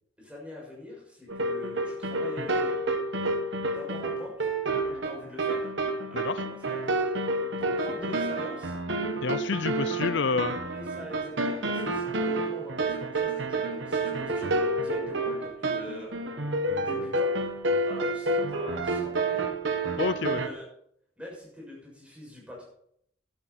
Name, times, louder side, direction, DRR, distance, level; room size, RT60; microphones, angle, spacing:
voice 1, 0.2-2.6 3.7-4.5 4.8-5.7 6.1-6.8 7.2-8.7 10.7-16.1 16.7-17.3 17.8-19.4 20.2-20.7 21.2-22.7, left 1 dB, 5° right, -4 dB, 6.6 m, -43 dB
sound 1, 1.3-20.5, right 2 dB, 65° right, 1.4 m, -29 dB
voice 2, 9.2-10.6 20.0-20.4, left 5 dB, 65° left, 14 dB, 0.5 m, -28 dB
12.5 x 12.5 x 4.3 m, 0.69 s
head